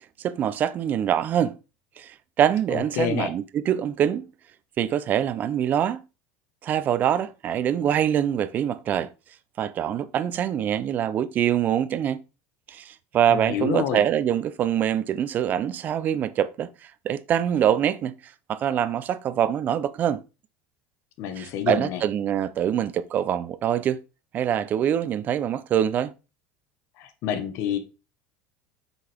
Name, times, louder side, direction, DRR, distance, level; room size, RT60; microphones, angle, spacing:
voice 1, 0.2-1.5 2.0-4.3 4.8-6.0 6.6-9.1 9.6-12.2 12.7-18.1 18.5-20.2 21.4-24.0 24.3-26.1, right 9 dB, 30° right, 0.6 m, -24 dB
voice 2, 2.7-3.3 13.3-14.0 21.2-22.0 27.0-27.8, left 8 dB, 50° left, 1.2 m, -28 dB
7.9 x 6.2 x 3.5 m
cardioid pair, 160°, 6 cm